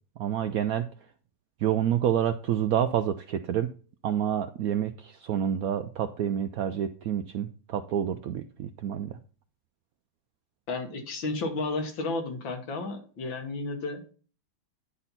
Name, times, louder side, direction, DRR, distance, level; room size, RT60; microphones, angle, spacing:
voice 1, 0.2-0.9 1.6-3.7 4.0-9.2, right 10 dB, 75° right, 10 dB, 0.8 m, -28 dB
voice 2, 10.7-14.0, left 3 dB, 85° left, 4 dB, 2.3 m, -32 dB
9.9 x 4.1 x 5.7 m, 0.39 s
omnidirectional pair, 2.1 m